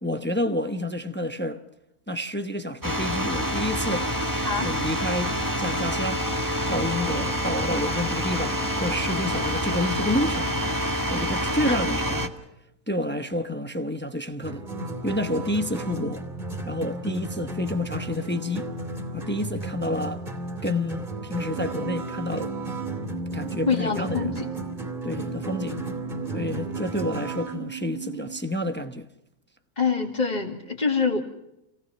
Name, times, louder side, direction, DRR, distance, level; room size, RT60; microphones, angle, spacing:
voice 1, 0.0-1.6 2.1-4.1 4.6-6.2 6.7-10.6 11.1-12.3 12.9-14.6 15.0-16.2 16.6-18.7 19.1-20.2 20.6-22.5 23.3-24.4 25.0-25.8 26.3-29.1, left 1 dB, 10° left, 0.7 m, -29 dB
sound 1, 2.8-12.3, equal, 15° right, 1.5 m, -27 dB
sound 2, 14.4-27.6, right 1 dB, 30° right, 3.0 m, -34 dB
sound 3, 21.5-28.4, right 12 dB, 75° right, 3.5 m, -37 dB
voice 2, 23.7-24.5 29.8-31.2, left 5 dB, 25° left, 2.4 m, -25 dB
28.0 x 18.0 x 5.9 m
omnidirectional pair, 1.7 m